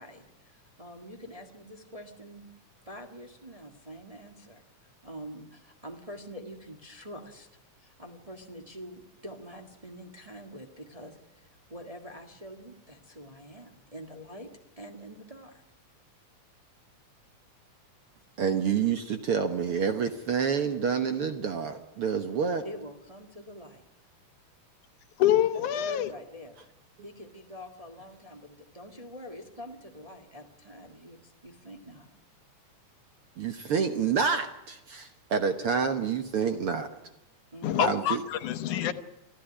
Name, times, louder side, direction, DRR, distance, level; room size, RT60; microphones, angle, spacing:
voice 1, 0.0-2.4 2.8-4.6 5.0-7.5 7.8-14.5 14.8-15.6 22.6-23.8 25.5-26.6 27.0-32.1 37.5-37.9, equal, 15° right, 1.4 m, -45 dB
voice 2, 18.4-22.6 33.4-36.9 37.8-38.2, right 6 dB, 55° right, 1.7 m, -28 dB
voice 3, 25.2-26.1 37.6-38.9, left 11 dB, 75° left, 2.6 m, -26 dB
26.0 x 14.0 x 10.0 m
omnidirectional pair, 3.6 m